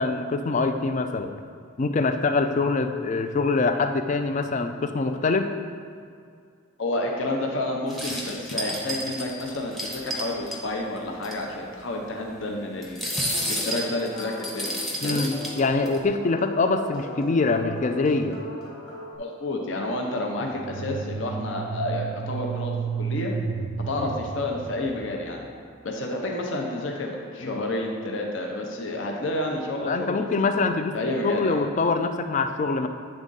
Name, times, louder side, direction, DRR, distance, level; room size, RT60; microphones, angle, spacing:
voice 1, 0.0-1.3 1.8-5.5 15.0-18.4 20.4-20.5 24.0-24.1 27.4-27.6 29.8-31.0 31.2-32.9, left 3 dB, 35° left, 7 dB, 0.3 m, -24 dB
voice 2, 6.8-13.1 13.5-15.3 19.2-23.3 23.9-25.5 25.8-30.3 30.9-31.6, left 1 dB, 60° left, 0 dB, 0.7 m, -30 dB
sound 1, 7.9-10.6 11.0-11.1 11.2-11.4 12.8-16.0, equal, ahead, 0.7 m, -31 dB
sound 2, 13.1-19.2, left 1 dB, 20° left, 1.1 m, -40 dB
sound 3, 20.5-25.4, right 5 dB, 55° right, 0.4 m, -32 dB
8.7 x 3.6 x 3.9 m, 2.3 s
head